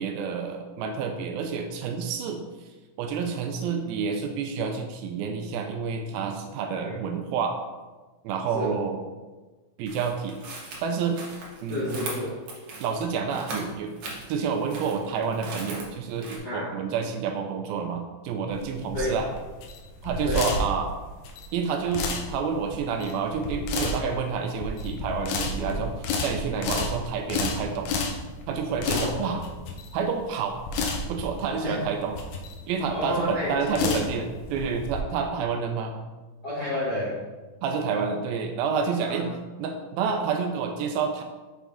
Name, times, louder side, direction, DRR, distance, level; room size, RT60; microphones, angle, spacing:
voice 1, 0.0-2.4 3.0-7.6 8.2-9.0 9.8-10.4 10.8-11.2 11.6-12.0 12.8-13.9 14.3-19.3 20.0-20.9 21.5-28.0 28.5-29.4 29.9-30.6 31.1-32.2 32.7-36.0 37.6-41.2, right 5 dB, 80° right, 4 dB, 2.2 m, -29 dB
sound 1, 9.9-16.4, right 3 dB, 65° right, 1.7 m, -39 dB
voice 2, 11.7-12.4 16.4-16.7 18.9-19.2 20.2-20.5 25.6-25.8 28.8-29.3 31.6-31.8 32.9-33.5 33.8-33.9 36.4-37.2 39.0-39.2, left 1 dB, 50° left, -11 dB, 1.2 m, -30 dB
sound 2, 18.5-35.0, left 3 dB, 85° left, 1.8 m, -31 dB
6.1 x 5.6 x 3.5 m, 1.2 s
omnidirectional pair, 4.5 m